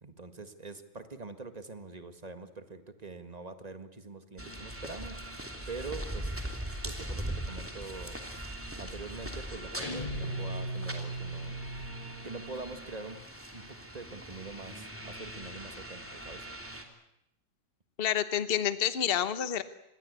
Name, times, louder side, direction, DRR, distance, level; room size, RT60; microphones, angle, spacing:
voice 1, 0.0-5.2 5.7-6.3 6.8-8.2 8.8-11.6 12.2-13.2 13.5-13.6 13.9-16.5, right 3 dB, 20° right, 8 dB, 1.6 m, -44 dB
sound 1, 4.4-16.8, right 1 dB, 5° right, 2.8 m, -41 dB
sound 2, 9.8-12.4, right 1 dB, 20° left, 1.8 m, -37 dB
voice 2, 18.0-19.6, left 9 dB, 35° left, 12 dB, 1.2 m, -28 dB
26.5 x 20.5 x 8.2 m, 0.84 s
omnidirectional pair, 2.0 m